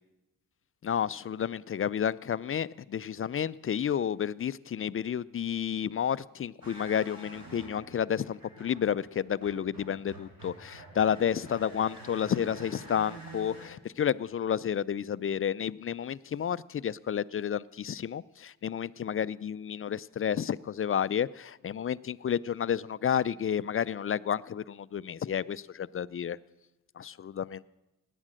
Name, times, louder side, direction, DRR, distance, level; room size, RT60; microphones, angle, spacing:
voice 1, 0.8-26.4 27.0-27.6, left 8 dB, 35° left, 0.4 m, -31 dB
sound 1, 6.6-13.7, right 2 dB, 55° right, 6.5 m, -48 dB
16.5 x 10.0 x 6.4 m
supercardioid pair, 50°, 41 cm